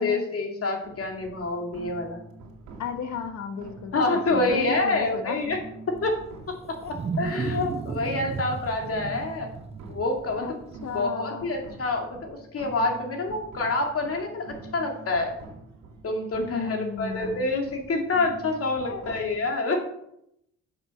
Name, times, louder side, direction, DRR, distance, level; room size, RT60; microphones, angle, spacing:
voice 1, 0.0-2.2 3.9-5.6 5.9-6.1 7.2-9.5 9.9-10.5 10.9-15.3 16.0-19.9, left 2 dB, 50° left, 2 dB, 2.3 m, -27 dB
sound 1, 0.8-19.4, right 3 dB, 85° right, 2.3 m, -45 dB
voice 2, 2.8-5.4 6.8-6.9 10.4-10.6 10.8-11.5 16.4-17.5 18.8-19.2, left 7 dB, 65° left, 7 dB, 1.3 m, -34 dB
Wild animals, 6.0-11.0, right 6 dB, 20° right, 0.3 m, -34 dB
7.4 x 6.0 x 6.3 m, 0.76 s
cardioid pair, 90°, 30 cm